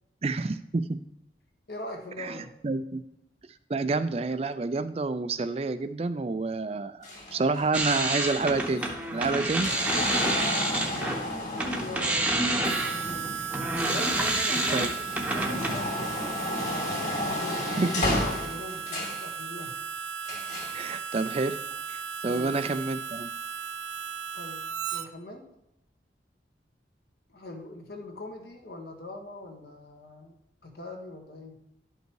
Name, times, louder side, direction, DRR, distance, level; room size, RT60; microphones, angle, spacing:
voice 1, 0.2-1.0 2.2-2.4 2.6-3.0 3.7-8.9 9.1-9.7 14.7-14.9 17.7-17.9 20.7-21.6 21.9-23.3, right 3 dB, 35° right, 12 dB, 0.4 m, -28 dB
voice 2, 1.7-2.5 9.9-13.5 13.8-16.9 17.2-19.8 22.2-22.6 24.3-25.5 27.3-30.3 30.6-31.6, left 1 dB, 70° left, 3 dB, 1.6 m, -42 dB
sound 1, 7.0-14.2 14.7-19.3 20.2-20.8 21.7-21.8, left 1 dB, 40° left, 2.3 m, -33 dB
sound 2, 7.7-11.2 11.5-15.8, right 1 dB, 10° right, 0.9 m, -28 dB
Harmonica, 12.6-25.1, right 7 dB, 85° right, 0.5 m, -36 dB
11.5 x 5.5 x 4.6 m, 0.83 s
head